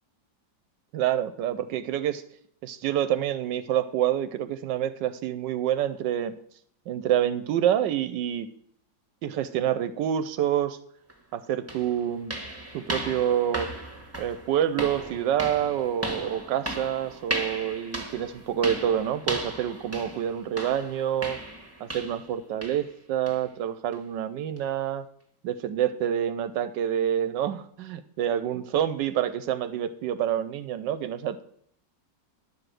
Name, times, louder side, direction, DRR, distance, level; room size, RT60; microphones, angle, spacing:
voice 1, 0.9-2.2 2.6-6.3 6.9-8.5 9.2-10.8 11.3-12.4 12.7-13.7 14.2-21.4 21.8-25.0 25.4-31.4, right 10 dB, 80° right, 12 dB, 1.2 m, -27 dB
sound 1, 11.1-11.2 11.7-22.3 22.6-22.9 23.3-23.4 23.9-24.0 24.6-24.7, right 1 dB, 10° right, 1.3 m, -36 dB
11.0 x 4.9 x 7.6 m, 0.66 s
omnidirectional pair, 2.0 m